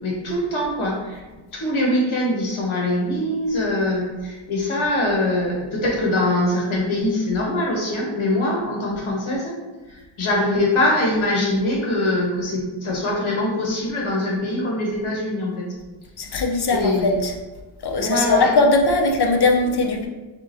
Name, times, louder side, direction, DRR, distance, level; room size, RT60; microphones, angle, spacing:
voice 1, 0.0-1.2 1.5-9.5 9.9-15.6 16.7-17.1 18.0-18.5, left 1 dB, 90° left, -3 dB, 1.3 m, -23 dB
voice 2, 16.2-17.3 17.8-20.1, left 3 dB, 55° left, 2 dB, 0.7 m, -19 dB
4.9 x 3.5 x 2.7 m, 1.2 s
wide cardioid pair, 110°, 48 cm